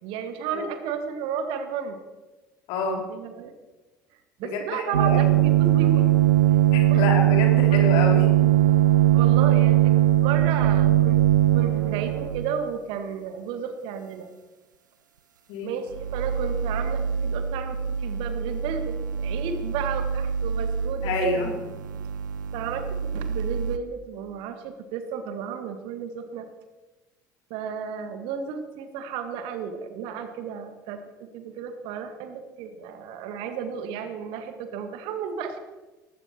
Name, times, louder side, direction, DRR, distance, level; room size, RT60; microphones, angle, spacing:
voice 1, 0.0-2.0 2.9-3.5 4.4-6.1 6.9-7.0 7.7-7.8 9.1-9.9 10.2-11.2 11.5-14.3 15.6-21.4 22.5-22.8 23.1-26.5 27.5-35.6, right 7 dB, 55° right, 8 dB, 2.0 m, -33 dB
voice 2, 2.7-3.0 4.4-5.3 6.7-8.3 15.5-15.7 21.0-21.5, left 4 dB, 55° left, 2 dB, 3.8 m, -28 dB
sound 1, 4.9-12.6 15.9-23.8, right 12 dB, 75° right, 0.6 m, -21 dB
18.5 x 16.0 x 4.5 m, 1.2 s
figure-of-eight pair, 65°, 10 cm